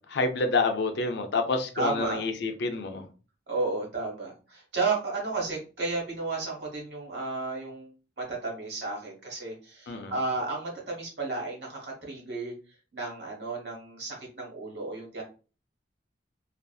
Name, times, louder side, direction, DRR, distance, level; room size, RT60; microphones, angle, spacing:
voice 1, 0.1-3.1 9.9-10.2, left 3 dB, 65° left, 0.5 m, -28 dB
voice 2, 1.7-2.2 3.5-7.9 8.2-12.5 12.9-15.2, right 3 dB, 65° right, 1.2 m, -33 dB
2.6 x 2.4 x 2.3 m
head